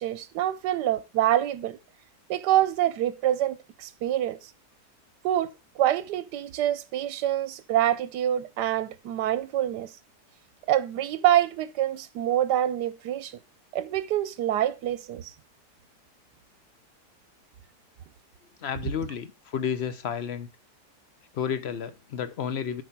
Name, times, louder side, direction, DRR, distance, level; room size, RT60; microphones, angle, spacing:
voice 1, 0.0-1.8 2.3-4.4 5.2-9.9 10.7-13.4 13.7-15.3, right 12 dB, 85° right, 1.2 m, -26 dB
voice 2, 18.6-20.5 21.3-22.8, left 8 dB, 50° left, 0.9 m, -31 dB
8.4 x 4.6 x 5.9 m
omnidirectional pair, 1.8 m